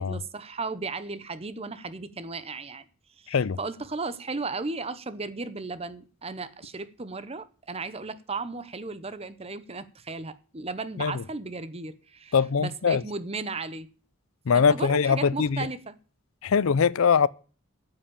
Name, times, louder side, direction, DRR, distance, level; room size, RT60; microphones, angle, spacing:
voice 1, 0.0-2.9 3.2-13.9 14.5-15.9, right 3 dB, 30° right, 0.9 m, -35 dB
voice 2, 3.3-3.6 11.0-11.2 12.3-13.0 14.5-15.7 16.4-17.3, left 6 dB, 75° left, 0.5 m, -22 dB
9.4 x 7.7 x 8.7 m
head